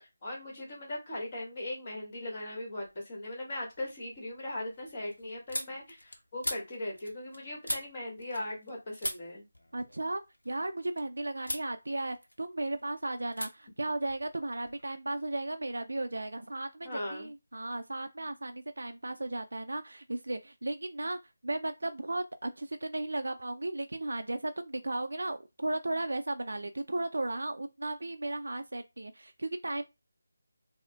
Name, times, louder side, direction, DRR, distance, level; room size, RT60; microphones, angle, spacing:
voice 1, 0.2-9.4 16.8-17.3, left 1 dB, 35° left, 1.5 m, -39 dB
sound 1, 2.7-3.3 3.7-8.7 9.0-11.0 11.4-11.7 12.1-12.8 13.3-13.5 13.8-14.8, left 1 dB, 85° left, 0.7 m, -41 dB
voice 2, 9.7-29.8, right 2 dB, 75° right, 0.3 m, -35 dB
4.5 x 2.1 x 2.2 m
figure-of-eight pair, 160°, 0 cm